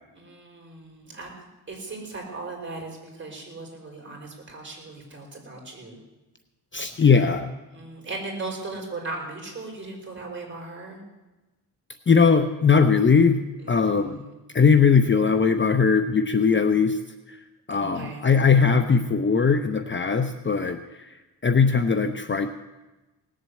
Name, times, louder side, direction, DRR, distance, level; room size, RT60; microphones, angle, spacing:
voice 1, 0.1-1.3 1.7-6.0 7.7-11.0 13.6-14.3 17.7-18.3, right 3 dB, 30° right, 0 dB, 5.3 m, -37 dB
voice 2, 6.7-7.5 12.1-14.2 14.5-17.0 17.3-17.4 17.7-22.5, left 5 dB, 30° left, 8 dB, 0.8 m, -20 dB
18.5 x 7.6 x 8.4 m, 1.1 s
cardioid pair, 105°, 40 cm